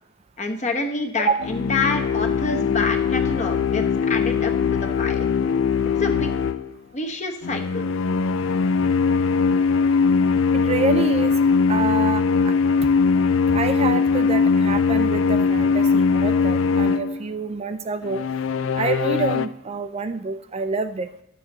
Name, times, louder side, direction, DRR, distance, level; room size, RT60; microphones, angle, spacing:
voice 1, 0.4-5.2 6.0-6.3 6.9-7.8, left 3 dB, 35° left, 5 dB, 1.0 m, -27 dB
sound 1, 1.4-6.7 7.4-17.3 18.1-19.5, left 5 dB, 75° left, 0.4 m, -21 dB
voice 2, 10.5-11.3 11.7-12.5 13.5-18.2 18.7-21.1, right 4 dB, 30° right, 10 dB, 0.3 m, -27 dB
10.5 x 7.0 x 4.0 m, 0.81 s
head